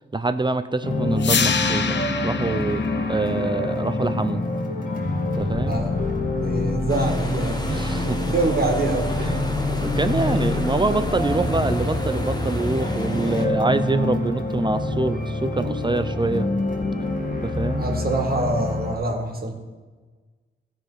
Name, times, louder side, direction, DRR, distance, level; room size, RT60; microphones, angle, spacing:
voice 1, 0.1-2.0 2.2-4.4 5.3-5.8 7.7-8.2 9.1-9.4 9.8-16.5 17.4-17.9, right 3 dB, 20° right, 10 dB, 0.6 m, -25 dB
sound 1, 0.8-19.0, left 2 dB, 40° left, 1.8 m, -26 dB
sound 2, 1.2-7.2, left 6 dB, 55° left, 0.8 m, -28 dB
voice 2, 5.7-6.0 6.4-7.6 8.3-9.3 17.8-19.5, right 2 dB, 45° right, 2 dB, 1.9 m, -25 dB
sound 3, 6.9-13.5, left 1 dB, 20° left, 1.5 m, -33 dB
14.0 x 5.1 x 5.6 m, 1.4 s
cardioid pair, 60°, 21 cm